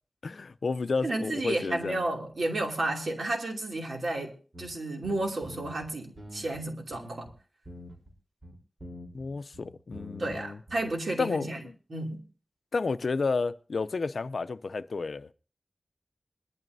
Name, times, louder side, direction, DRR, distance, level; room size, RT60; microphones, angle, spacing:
voice 1, 0.2-2.0 9.1-10.6 11.2-11.7 12.7-15.3, left 4 dB, 80° left, 0.5 m, -31 dB
voice 2, 1.0-4.3 4.6-7.3 10.2-11.6 11.9-12.2, right 2 dB, 80° right, 2.8 m, -32 dB
sound 1, 4.5-4.7 5.0-5.9 6.2-7.3 7.6-8.1 8.4-10.4 10.7-10.9, left 1 dB, 35° right, 3.8 m, -45 dB
21.5 x 12.5 x 2.7 m
wide cardioid pair, 85°, 0 cm